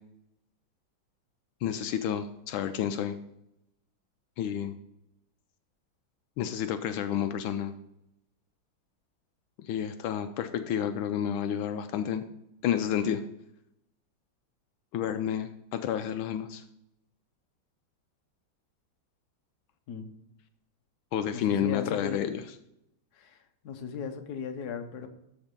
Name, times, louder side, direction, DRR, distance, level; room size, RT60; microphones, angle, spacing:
voice 1, 1.6-3.2 4.4-4.7 6.4-7.7 9.6-12.2 12.6-13.2 14.9-16.6 21.1-22.4, left 9 dB, 80° left, 9 dB, 1.4 m, -30 dB
voice 2, 21.3-22.2 23.1-23.4 23.6-25.1, left 6 dB, 55° left, 6 dB, 1.3 m, -37 dB
13.0 x 4.4 x 5.2 m, 0.81 s
omnidirectional pair, 2.2 m